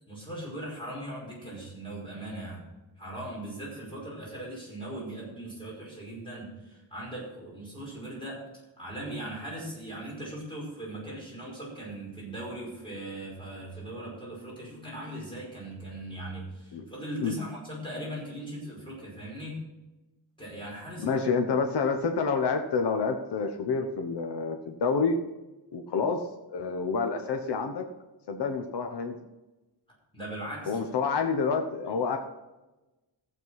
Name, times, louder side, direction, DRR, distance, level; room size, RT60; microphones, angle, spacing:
voice 1, 0.1-2.6 3.0-8.5 8.8-19.6 20.4-21.2 30.1-30.8, right 1 dB, 10° left, -4 dB, 5.0 m, -39 dB
voice 2, 21.0-25.1 25.7-26.2 26.5-27.8 28.3-29.2 30.7-32.2, left 5 dB, 60° left, 4 dB, 1.0 m, -28 dB
15.0 x 7.7 x 4.8 m, 1.1 s
wide cardioid pair, 170°, 45 cm